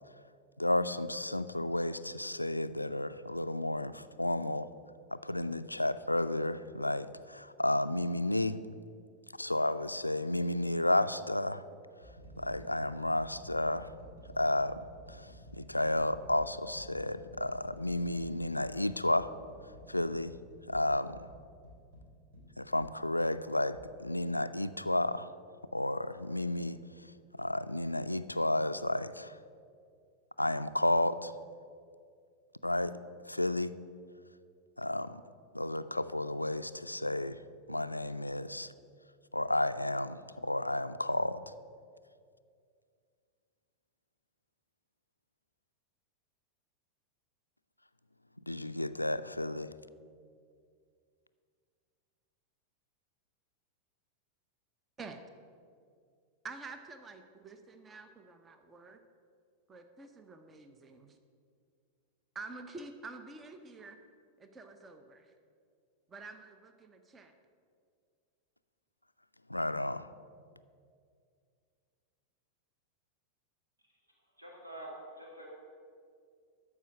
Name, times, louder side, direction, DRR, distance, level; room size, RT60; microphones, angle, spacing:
voice 1, 0.6-4.7 5.1-8.6 9.4-11.6 12.4-13.9 14.4-19.3 19.9-20.3 20.7-21.2 22.6-25.3 25.7-26.8 27.4-29.4 30.4-31.3 32.6-33.0 33.3-33.7 34.8-35.2 35.5-37.4 37.7-38.7 39.3-41.5 48.5-49.7 69.5-70.1, left 1 dB, 85° left, 13 dB, 0.3 m, -32 dB
sound 1, 11.6-22.9 23.7-23.9, equal, 60° right, 2.6 m, -53 dB
voice 2, 56.4-59.0 59.7-61.2 62.3-64.0 64.4-65.3 66.1-67.3, right 3 dB, 20° right, 7 dB, 0.7 m, -48 dB
voice 3, 74.4-75.5, right 1 dB, 80° right, -2 dB, 2.1 m, -46 dB
13.0 x 4.8 x 7.3 m, 2.3 s
figure-of-eight pair, 90°, 0 cm